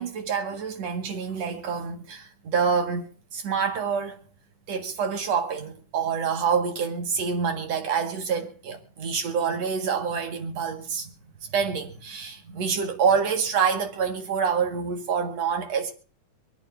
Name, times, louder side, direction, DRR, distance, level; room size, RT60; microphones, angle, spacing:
voice 1, 0.0-4.2 4.7-11.1 11.5-15.9, right 6 dB, 60° right, 2.8 m, -27 dB
26.0 x 9.2 x 2.6 m
omnidirectional pair, 3.6 m